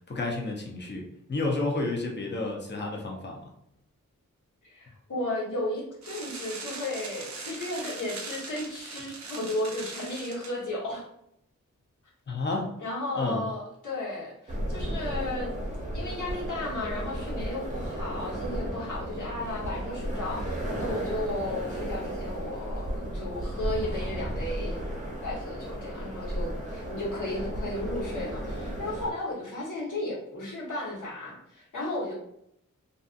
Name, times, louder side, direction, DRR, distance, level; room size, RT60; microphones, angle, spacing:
voice 1, 0.1-3.5 12.3-12.7 13.1-13.4, left 2 dB, 35° left, 0 dB, 0.7 m, -31 dB
voice 2, 4.6-11.0 12.8-15.6 15.9-24.8 25.2-32.1, left 1 dB, 70° left, -6 dB, 1.2 m, -34 dB
sound 1, 6.0-10.5, right 4 dB, 60° right, 0.6 m, -40 dB
sound 2, 14.5-29.1, right 1 dB, 25° right, 0.7 m, -34 dB
2.6 x 2.5 x 2.5 m, 0.75 s
wide cardioid pair, 65°, 32 cm